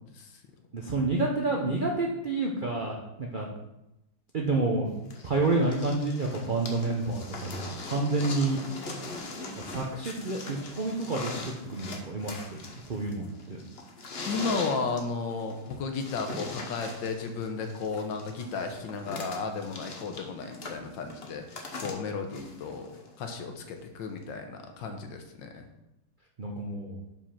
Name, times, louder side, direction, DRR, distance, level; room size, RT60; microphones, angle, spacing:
voice 1, 0.7-3.5 4.3-4.9 5.2-8.6 9.7-11.3 11.7-12.6 12.9-13.6 26.4-27.0, right 3 dB, 80° right, 0 dB, 0.4 m, -29 dB
sound 1, 5.1-23.2 24.2-24.3, left 2 dB, 40° left, 0.9 m, -41 dB
voice 2, 14.3-25.6, left 4 dB, 70° left, 5 dB, 1.5 m, -34 dB
5.4 x 5.1 x 5.7 m, 0.90 s
omnidirectional pair, 2.1 m